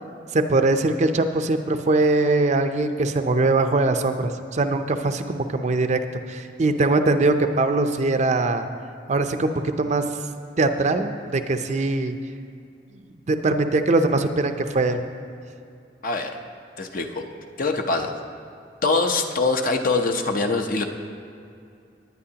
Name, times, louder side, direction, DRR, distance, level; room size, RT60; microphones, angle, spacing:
voice 1, 0.3-6.0 6.3-8.7 9.1-10.0 10.6-12.2 13.3-15.0, right 2 dB, 40° right, 8 dB, 0.5 m, -21 dB
voice 2, 16.0-16.4 16.8-17.2 17.6-18.1 18.8-20.8, left 3 dB, 50° left, 4 dB, 0.7 m, -23 dB
18.5 x 9.4 x 2.9 m, 2.5 s
head